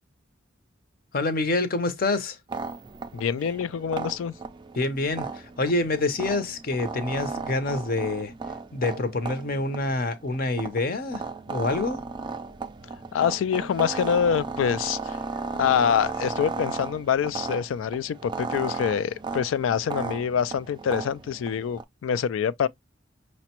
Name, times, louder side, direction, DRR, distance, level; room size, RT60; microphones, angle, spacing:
voice 1, 1.1-2.4 4.8-8.3 8.7-12.0, left 2 dB, 50° left, 0.7 m, -27 dB
sound 1, 2.5-21.8, right 4 dB, 25° right, 0.3 m, -35 dB
voice 2, 3.1-4.3 13.1-15.2 15.6-22.7, left 7 dB, 85° left, 0.3 m, -25 dB
5.9 x 2.1 x 2.8 m
head